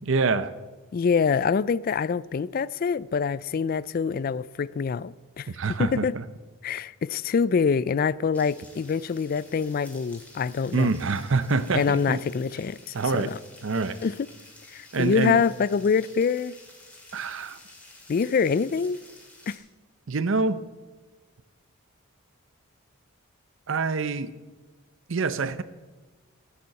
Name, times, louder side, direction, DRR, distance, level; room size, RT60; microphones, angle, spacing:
voice 1, 0.0-0.5 5.5-6.2 10.7-12.2 12.9-13.3 13.6-14.0 14.9-15.4 17.1-17.6 20.1-20.6 23.7-24.3 25.1-25.6, right 4 dB, 60° right, 0.6 m, -26 dB
voice 2, 0.9-5.5 5.8-6.2 6.6-10.9 11.7-13.4 14.0-14.3 14.7-16.5 18.1-19.0 19.5-19.6, left 6 dB, 45° left, 0.3 m, -25 dB
sound 1, 8.3-19.6, left 2 dB, 5° left, 2.3 m, -51 dB
14.5 x 6.9 x 7.7 m
head